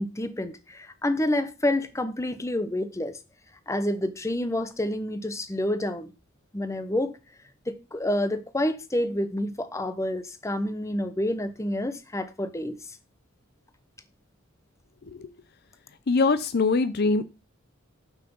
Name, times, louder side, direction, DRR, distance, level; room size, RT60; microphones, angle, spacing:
voice 1, 0.0-3.2 3.7-6.1 6.5-7.2 7.7-12.8, left 1 dB, 15° left, 1.0 m, -28 dB
voice 2, 16.1-17.2, left 3 dB, 50° left, 0.6 m, -22 dB
7.3 x 6.0 x 7.1 m
head